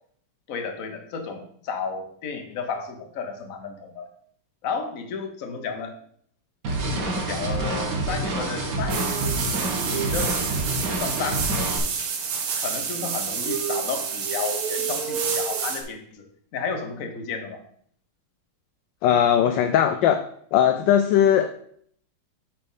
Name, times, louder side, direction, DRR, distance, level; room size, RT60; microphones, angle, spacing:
voice 1, 0.5-4.1 4.6-5.9 6.8-10.3 10.9-11.5 12.6-16.3 16.5-17.6, left 5 dB, 50° left, 5 dB, 1.1 m, -32 dB
sound 1, 6.6-11.8, right 2 dB, 55° right, 1.7 m, -27 dB
sound 2, 8.9-15.8, right 6 dB, 75° right, 1.8 m, -28 dB
voice 2, 19.0-20.2 20.5-21.7, left 9 dB, 75° left, 8 dB, 1.1 m, -19 dB
7.1 x 4.4 x 5.4 m, 0.63 s
omnidirectional pair, 2.4 m